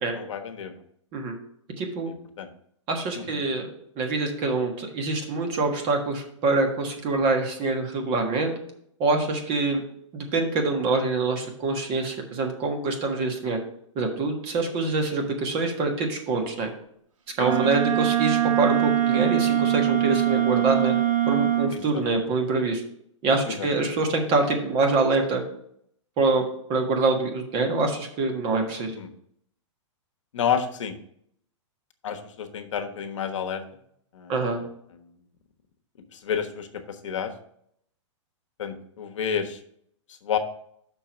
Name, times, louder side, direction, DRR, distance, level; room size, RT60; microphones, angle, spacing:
voice 1, 0.1-0.8 2.4-2.5 3.2-3.4 17.4-17.5 21.7-22.0 23.5-23.7 28.9-29.1 30.3-30.9 32.0-33.6 34.1-34.3 36.1-37.3 38.6-39.6 40.2-40.4, left 8 dB, 75° left, 7 dB, 1.1 m, -30 dB
voice 2, 1.8-2.1 2.9-3.7 4.0-8.5 9.0-9.8 10.1-13.6 13.9-16.7 17.4-20.9 21.3-22.8 23.2-25.4 26.2-26.4 26.7-28.9 34.3-34.6, right 3 dB, 30° right, 3 dB, 1.5 m, -25 dB
Wind instrument woodwind instrument, 17.4-21.8, right 12 dB, 85° right, 1.2 m, -23 dB
6.2 x 4.5 x 6.1 m, 0.69 s
hypercardioid pair, 150°, 16 cm